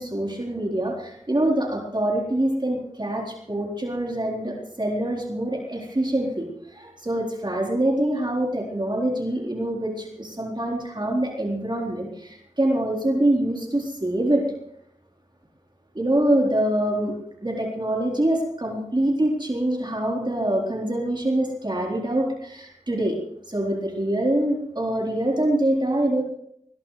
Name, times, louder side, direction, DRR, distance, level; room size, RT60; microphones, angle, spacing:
voice 1, 0.0-14.5 15.9-17.1 17.4-23.2 23.5-26.2, right 1 dB, 35° right, -1 dB, 3.9 m, -25 dB
21.0 x 20.0 x 3.2 m, 0.76 s
wide cardioid pair, 50°, 13 cm